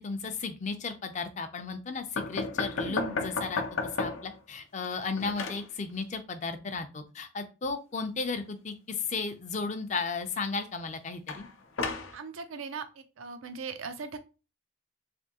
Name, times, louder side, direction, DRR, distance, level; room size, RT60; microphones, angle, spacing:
voice 1, 0.0-3.6 4.0-11.5, left 4 dB, 35° left, 8 dB, 0.4 m, -34 dB
sound 1, 2.2-4.4 4.7-5.7 11.3-12.2, left 4 dB, 80° left, 0.6 m, -33 dB
voice 2, 2.8-3.3 12.1-12.9 13.2-14.2, right 4 dB, 90° right, 8 dB, 0.6 m, -39 dB
3.4 x 2.6 x 2.8 m, 0.31 s
head